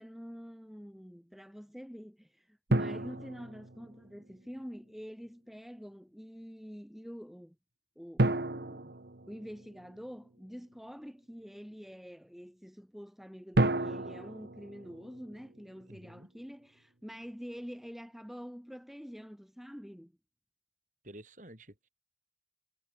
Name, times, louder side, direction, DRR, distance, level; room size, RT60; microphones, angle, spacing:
voice 1, 0.0-7.5 7.9-9.0 9.3-20.1, equal, ahead, 3.4 m, -46 dB
sound 1, 2.7-4.3 8.2-10.1 13.5-15.8, right 2 dB, 70° right, 1.5 m, -32 dB
voice 2, 2.8-3.2 15.9-16.3 21.0-21.9, right 1 dB, 45° right, 6.9 m, -50 dB
head